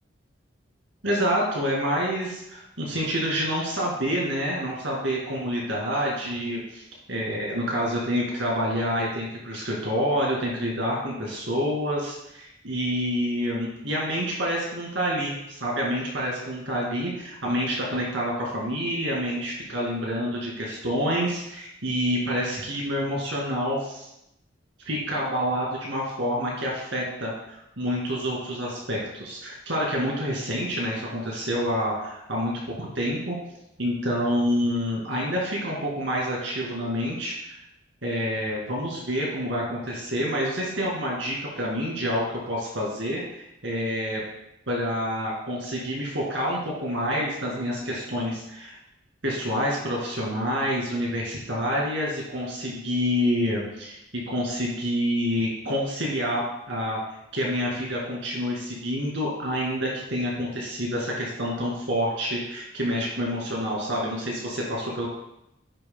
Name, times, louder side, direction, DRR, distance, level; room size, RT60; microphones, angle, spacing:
voice 1, 1.0-24.1 24.8-33.4 33.8-37.6 38.0-44.2 44.7-48.8 49.2-57.0 57.3-65.1, equal, 75° right, -3 dB, 2.2 m, -28 dB
9.4 x 6.7 x 2.2 m, 0.83 s
head